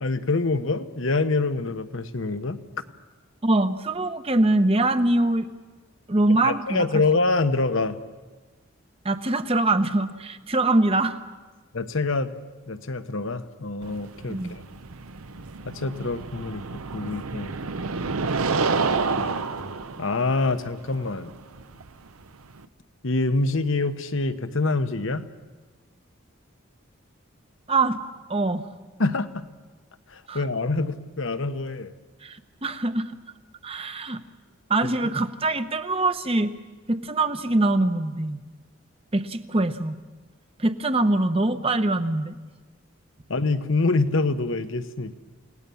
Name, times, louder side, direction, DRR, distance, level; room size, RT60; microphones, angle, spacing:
voice 1, 0.0-2.6 6.4-8.0 11.7-12.3 12.7-14.6 15.7-16.6 16.9-17.5 19.2-19.7 20.0-21.3 23.0-25.2 29.0-29.5 30.1-31.9 43.3-45.1, left 3 dB, 65° left, 10 dB, 1.1 m, -25 dB
voice 2, 3.4-5.5 6.1-7.0 9.0-11.2 14.3-14.5 27.7-28.0 28.3-28.6 30.3-30.4 32.2-33.0 33.6-34.2 34.7-36.5 36.9-38.4 39.1-40.0 40.6-42.4, right 2 dB, 25° right, 10 dB, 0.9 m, -23 dB
sound 1, 13.8-22.7, right 4 dB, 85° right, 0.9 m, -29 dB
29.0 x 18.5 x 7.1 m, 1.3 s
head